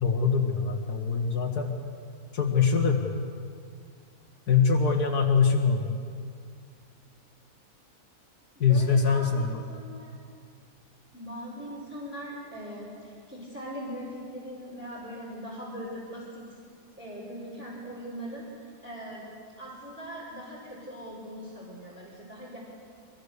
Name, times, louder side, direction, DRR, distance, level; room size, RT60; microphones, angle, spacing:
voice 1, 0.0-1.7 2.3-3.1 4.5-5.9 8.6-9.6, left 5 dB, 90° left, 0 dB, 2.1 m, -23 dB
voice 2, 8.6-10.1 11.1-16.4 17.0-19.2 19.6-22.6, equal, 5° right, -7 dB, 4.8 m, -40 dB
25.0 x 22.5 x 6.7 m, 2.2 s
omnidirectional pair, 1.6 m